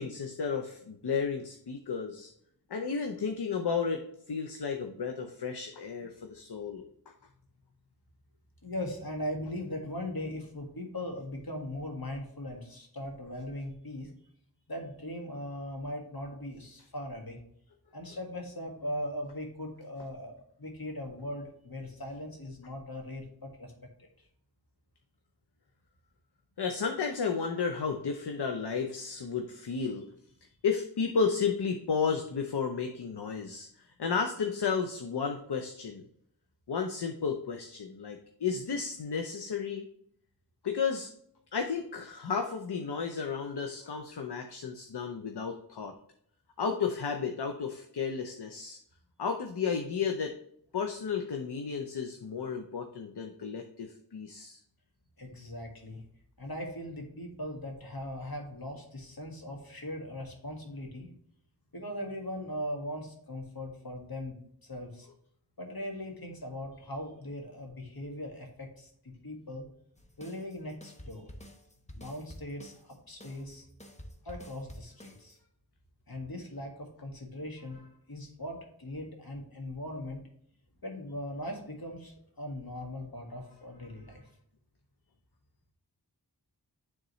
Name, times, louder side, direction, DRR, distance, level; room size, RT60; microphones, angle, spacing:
voice 1, 0.0-2.3 2.7-6.9 26.6-30.1 30.6-33.7 34.0-36.0 36.7-39.9 40.6-41.1 41.5-45.9 46.6-48.8 49.2-50.4 50.7-54.6, left 5 dB, 80° left, 5 dB, 0.7 m, -33 dB
voice 2, 8.6-14.1 14.7-17.4 17.9-23.7 24.0-24.3 55.2-56.0 56.4-61.1 61.7-65.1 65.6-69.7 70.2-71.3 71.9-73.7 74.2-75.4 76.1-80.2 80.8-84.3, left 1 dB, 65° left, 1 dB, 1.8 m, -39 dB
sound 1, 70.0-75.4, equal, 15° left, 1.0 m, -49 dB
9.6 x 3.7 x 3.1 m, 0.68 s
wide cardioid pair, 45°, 40 cm